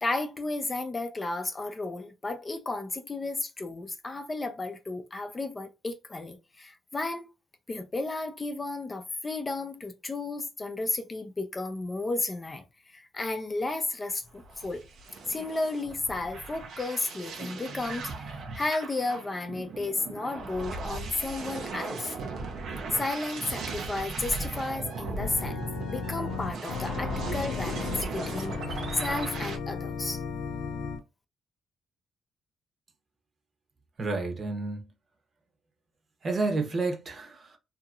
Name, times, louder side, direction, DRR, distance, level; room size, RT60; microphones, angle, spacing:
voice 1, 0.0-7.3 7.7-14.8 15.3-22.1 22.9-25.6 25.9-30.2, left 2 dB, 25° left, 0.6 m, -33 dB
sound 1, 14.3-29.6, right 3 dB, 70° right, 0.8 m, -37 dB
Organ, 25.2-31.0, left 6 dB, 75° left, 0.5 m, -35 dB
voice 2, 34.0-34.8 36.2-37.6, right 3 dB, 40° right, 1.0 m, -30 dB
2.8 x 2.7 x 2.4 m
cardioid pair, 90°, 0 cm